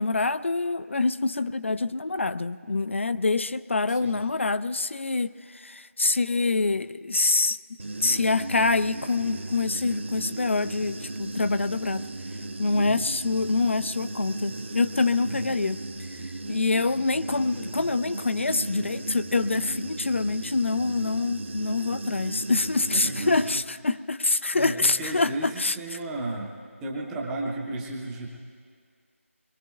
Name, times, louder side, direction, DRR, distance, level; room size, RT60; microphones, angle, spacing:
voice 1, 0.0-7.6 8.0-12.1 12.6-15.8 16.5-26.0, left 3 dB, 60° left, 14 dB, 0.3 m, -26 dB
Human voice / Buzz, 7.8-23.5, right 2 dB, 55° right, 0.7 m, -36 dB
voice 2, 12.7-13.0 15.2-15.5 22.9-23.4 24.5-26.5 26.8-28.3, right 2 dB, 5° right, -2 dB, 0.5 m, -34 dB
23.0 x 22.5 x 2.3 m, 2.1 s
figure-of-eight pair, 165°, 8 cm